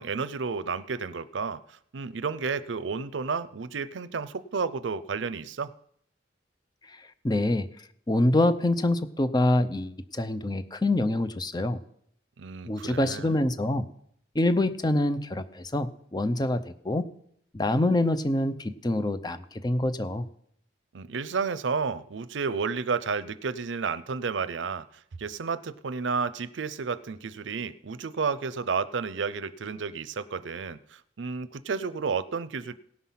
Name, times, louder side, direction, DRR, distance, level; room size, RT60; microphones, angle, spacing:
voice 1, 0.0-5.7 12.4-13.3 20.9-24.9 25.2-32.7, right 5 dB, 75° right, 16 dB, 0.6 m, -31 dB
voice 2, 7.2-7.7 8.1-11.8 12.7-13.9 14.3-17.1 17.5-20.3, left 1 dB, 20° left, 11 dB, 0.6 m, -25 dB
17.5 x 5.9 x 5.6 m, 0.68 s
head